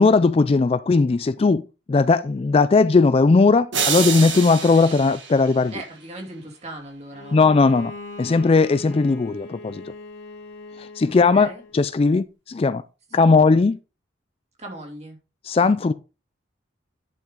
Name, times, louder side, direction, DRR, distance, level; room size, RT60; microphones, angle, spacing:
voice 1, 0.0-5.7 7.3-7.9 8.2-9.9 10.8-12.8 13.1-13.8 15.4-15.9, left 4 dB, 30° left, 0.3 m, -18 dB
sound 1, 3.7-6.1, right 6 dB, 75° right, 1.9 m, -27 dB
voice 2, 5.7-7.5 11.1-11.6 13.2-13.3 14.6-15.2, right 2 dB, 35° right, 2.6 m, -38 dB
Bowed string instrument, 7.1-11.8, left 2 dB, 70° left, 2.4 m, -40 dB
10.0 x 5.8 x 3.8 m
head